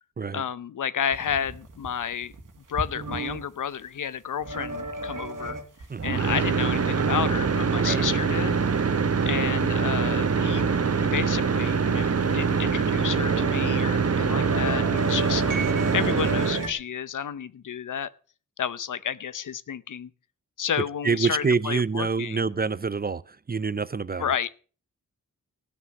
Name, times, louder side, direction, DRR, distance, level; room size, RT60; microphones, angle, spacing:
voice 1, 0.3-2.3 2.7-5.6 6.0-8.6 9.3-10.7 11.0-15.6 15.9-18.1 18.6-20.1 20.6-22.4 24.2-24.5, left 8 dB, 70° left, 0.7 m, -31 dB
sound 1, 1.1-3.4 4.4-5.9 6.3-8.0 8.4-8.5 9.0-10.7 11.1-11.2 11.4-11.5 11.8-12.1 13.0-13.6 13.8-16.7, right 3 dB, 80° right, 2.0 m, -34 dB
voice 2, 5.9-6.4 7.8-8.1 14.0-14.5 21.0-24.3, right 4 dB, 30° right, 0.6 m, -27 dB
sound 2, 6.0-16.7, right 5 dB, 50° right, 1.0 m, -24 dB
15.5 x 6.2 x 6.6 m
cardioid pair, 60°, 32 cm